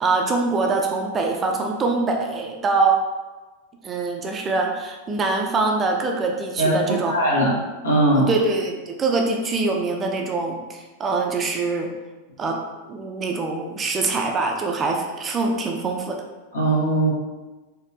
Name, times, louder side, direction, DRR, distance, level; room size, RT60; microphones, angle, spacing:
voice 1, 0.0-3.0 3.8-7.1 8.2-11.9 12.4-12.6 12.9-16.2, right 3 dB, 20° right, 2 dB, 0.5 m, -24 dB
voice 2, 7.1-7.5 7.8-8.3 16.5-17.1, right 1 dB, 70° left, -5 dB, 1.2 m, -19 dB
4.1 x 2.8 x 2.6 m, 1.2 s
figure-of-eight pair, 90°, 0 cm